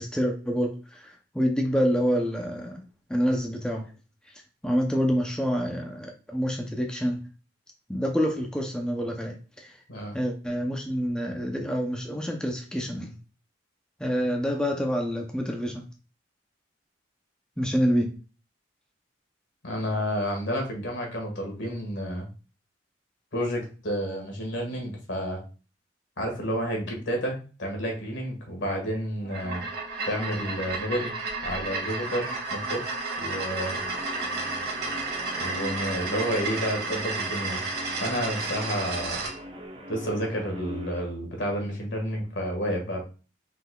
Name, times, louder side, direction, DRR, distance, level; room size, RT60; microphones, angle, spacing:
voice 1, 0.0-2.8 3.1-3.9 4.6-7.2 7.9-9.8 10.1-13.1 14.0-15.9 17.6-18.1, equal, 5° left, 1 dB, 0.6 m, -27 dB
voice 2, 19.6-22.3 23.3-25.4 26.2-29.6 30.0-31.1 31.4-32.8 33.2-33.8 35.4-37.6 38.0-39.2 39.9-43.0, equal, 80° left, 1 dB, 1.7 m, -30 dB
sound 1, 29.2-39.3, right 3 dB, 55° right, 1.4 m, -32 dB
Guitar, 33.7-41.1, equal, 30° right, 0.8 m, -41 dB
5.6 x 3.9 x 2.3 m, 0.35 s
head